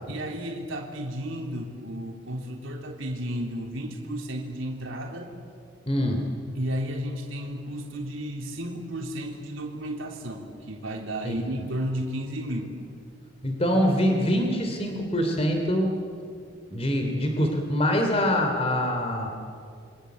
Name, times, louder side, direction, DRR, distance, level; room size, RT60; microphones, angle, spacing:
voice 1, 0.1-5.3 6.6-12.8 16.2-16.4, equal, 75° right, 0 dB, 3.6 m, -33 dB
voice 2, 5.9-6.3 11.2-11.4 13.4-15.9 16.7-19.3, equal, 30° left, 3 dB, 3.2 m, -24 dB
29.0 x 23.5 x 8.2 m, 2.3 s
head